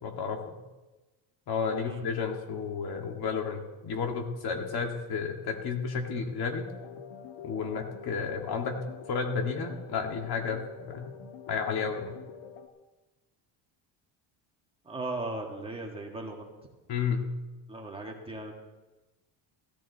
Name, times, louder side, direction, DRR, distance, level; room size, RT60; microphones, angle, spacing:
voice 1, 0.0-0.6 1.5-6.7 7.4-8.8 9.1-11.2 11.5-12.2 16.9-17.2, left 5 dB, 55° left, 3 dB, 2.2 m, -32 dB
sound 1, 6.7-12.7, left 7 dB, 70° left, 1.6 m, -46 dB
voice 2, 14.9-16.5 17.7-18.5, right 2 dB, 10° right, 0 dB, 1.8 m, -37 dB
16.5 x 13.5 x 4.1 m, 1.1 s
cardioid pair, 140°, 46 cm